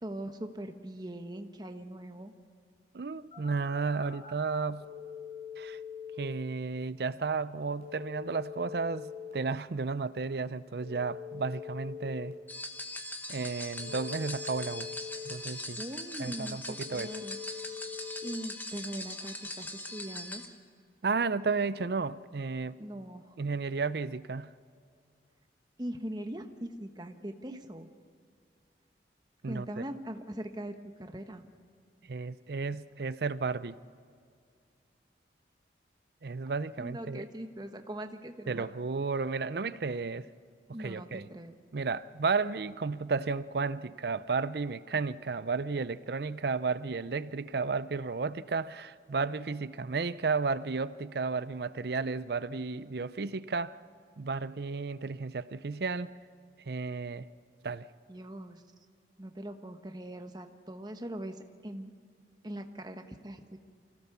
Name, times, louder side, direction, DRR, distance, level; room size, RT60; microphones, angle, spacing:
voice 1, 0.0-2.3 15.8-17.4 18.2-20.4 22.8-23.3 25.8-27.9 29.5-31.4 36.8-38.7 40.7-41.5 58.1-58.6 59.2-61.9 62.4-63.6, right 1 dB, 25° right, 6 dB, 1.1 m, -41 dB
voice 2, 2.9-4.9 5.6-5.8 6.2-12.4 13.3-14.9 15.2-15.8 16.2-17.1 21.0-22.8 23.4-24.5 27.5-27.6 29.4-29.7 32.0-33.8 36.2-37.3 38.5-40.3 40.8-41.3 41.7-53.8 54.2-56.2 56.6-57.3 57.6-57.9, right 4 dB, 60° right, 16 dB, 0.5 m, -33 dB
Telephone, 3.3-4.3 4.8-6.3 7.8-9.3 10.8-12.3 13.8-15.3 16.8-18.3, left 7 dB, 35° left, 5.3 m, -43 dB
sound 1, 12.5-20.5, left 1 dB, 10° left, 1.2 m, -41 dB
25.0 x 16.5 x 7.0 m, 2.2 s
head